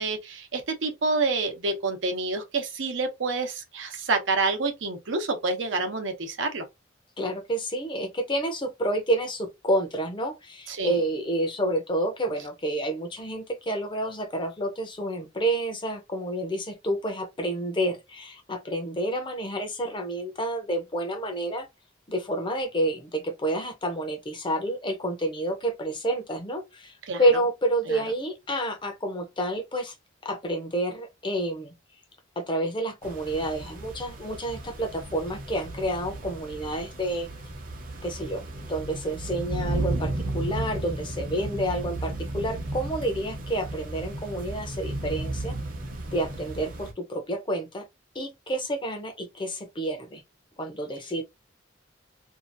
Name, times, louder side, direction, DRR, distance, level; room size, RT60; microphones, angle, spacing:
voice 1, 0.0-6.6 10.7-11.0 27.1-27.2 27.9-28.0, right 3 dB, 80° right, 0.8 m, -28 dB
voice 2, 7.2-21.7 22.1-29.9 30.2-31.7 32.4-37.3 38.0-45.6 46.1-47.8 48.1-50.2 50.6-51.2, right 1 dB, 25° left, 0.6 m, -29 dB
sound 1, 33.0-46.9, right 2 dB, 45° right, 0.9 m, -34 dB
2.7 x 2.4 x 2.6 m
head